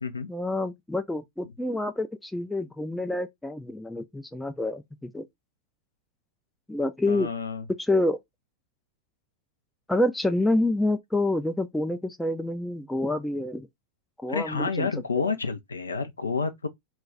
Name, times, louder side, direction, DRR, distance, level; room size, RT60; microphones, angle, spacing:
voice 1, 0.3-5.3 6.7-7.3 7.8-8.2 9.9-13.7 14.2-14.9 15.2-15.3, left 1 dB, 5° left, 0.4 m, -27 dB
voice 2, 7.1-7.6 14.3-16.7, left 4 dB, 75° left, 0.4 m, -29 dB
2.3 x 2.2 x 3.8 m
figure-of-eight pair, 90°, 0 cm